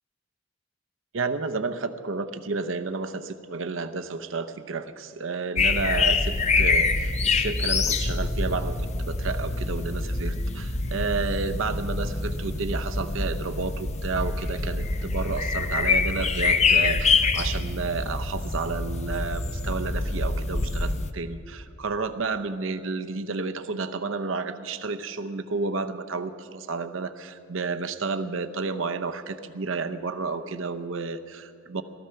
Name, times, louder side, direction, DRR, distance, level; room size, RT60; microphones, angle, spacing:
voice 1, 1.1-31.8, right 4 dB, 75° right, 9 dB, 0.8 m, -31 dB
sound 1, 5.6-21.1, left 4 dB, 35° left, 0.7 m, -25 dB
18.0 x 13.5 x 5.8 m, 2.4 s
head